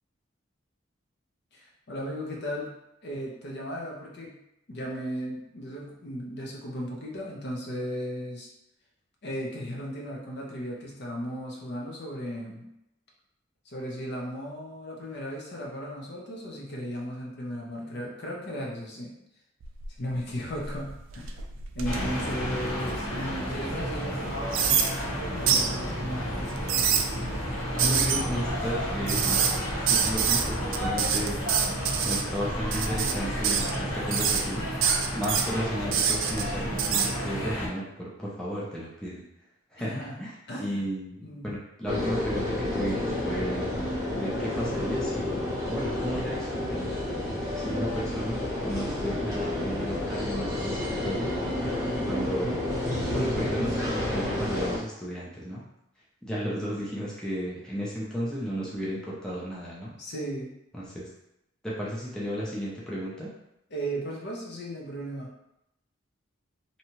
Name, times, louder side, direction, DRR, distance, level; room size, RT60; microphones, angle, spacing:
voice 1, 1.5-2.7 3.0-4.4 4.7-8.5 9.2-12.7 13.7-19.1 20.0-21.3 21.7-26.3 39.8-40.2 40.5-40.8 41.2-41.6 60.0-60.6 63.7-65.3, equal, 55° left, -2 dB, 0.6 m, -36 dB
sound 1, 19.6-20.1 20.6-23.2 23.7-23.8 24.5-24.9 25.5-25.7 26.5-27.0 27.8-28.2 29.1-29.6 29.9-30.4 30.7-32.2 32.7-33.1 33.4-33.8 34.1-34.4 34.8-35.4 35.9-36.4 36.8-37.1, right 7 dB, 80° right, 0.3 m, -25 dB
sound 2, 21.8-37.7, equal, 75° left, 1.1 m, -32 dB
voice 2, 27.8-31.4 32.0-34.7 35.1-39.3 39.7-39.9 40.2-40.3 40.6-43.7 44.1-46.9 47.6-51.3 52.1-52.6 53.0-55.6 56.2-59.9 60.7-61.1 61.6-63.3, equal, 5° left, -7 dB, 0.5 m, -34 dB
sound 3, 41.9-54.8, left 1 dB, 15° right, 0.9 m, -30 dB
2.7 x 2.2 x 2.9 m, 0.83 s
head